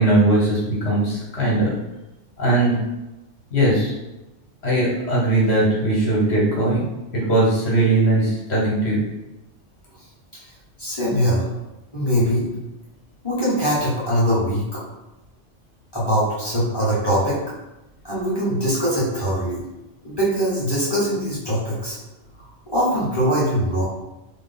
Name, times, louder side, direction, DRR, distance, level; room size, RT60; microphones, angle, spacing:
voice 1, 0.0-1.7 2.4-2.8 3.5-3.9 4.6-6.9 7.1-9.0, right 2 dB, 60° left, -5 dB, 1.4 m, -19 dB
voice 2, 10.8-11.5 11.9-12.5 13.2-14.8 15.9-17.4 18.0-19.6 20.0-22.0 22.7-23.8, equal, 20° left, -9 dB, 1.1 m, -22 dB
3.0 x 2.1 x 4.0 m, 1.0 s
omnidirectional pair, 1.3 m